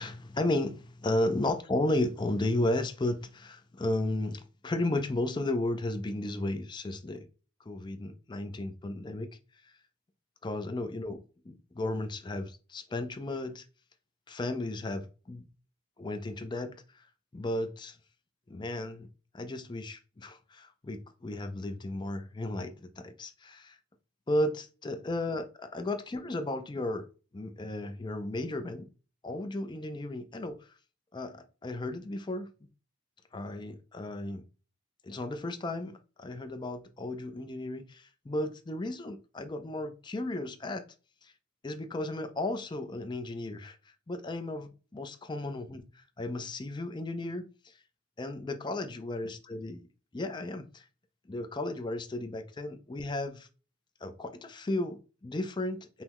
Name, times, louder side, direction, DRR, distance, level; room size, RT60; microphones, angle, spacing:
voice 1, 0.0-7.3 7.7-9.3 10.4-13.6 14.3-15.5 16.0-16.7 17.3-18.0 18.5-19.1 19.3-23.8 24.3-27.1 27.3-28.9 29.2-30.6 31.1-32.5 33.3-34.4 35.0-40.8 41.6-43.8 44.1-45.8 46.2-47.5 48.2-49.8 50.1-50.8 51.3-53.5 54.0-56.0, left 1 dB, 25° left, 0.4 m, -34 dB
5.5 x 2.1 x 3.0 m
head